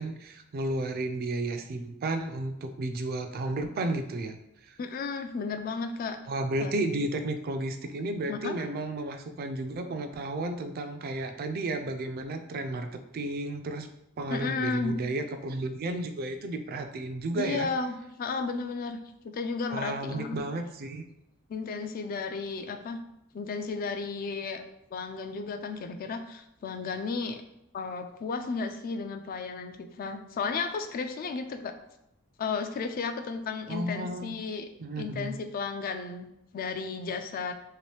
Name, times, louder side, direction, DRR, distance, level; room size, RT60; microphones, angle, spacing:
voice 1, 0.0-4.4 4.7-4.8 6.3-13.9 14.2-17.7 19.7-21.0 33.7-34.4 34.8-35.3, right 2 dB, 45° right, 7 dB, 0.3 m, -33 dB
voice 2, 4.8-6.2 6.6-6.8 8.3-8.5 14.3-14.9 17.4-19.0 19.2-20.4 21.5-23.0 23.3-24.6 24.9-27.4 27.7-31.7 32.4-34.7 35.0-37.5, left 4 dB, 45° left, 7 dB, 0.3 m, -33 dB
3.0 x 2.9 x 3.2 m, 0.83 s
head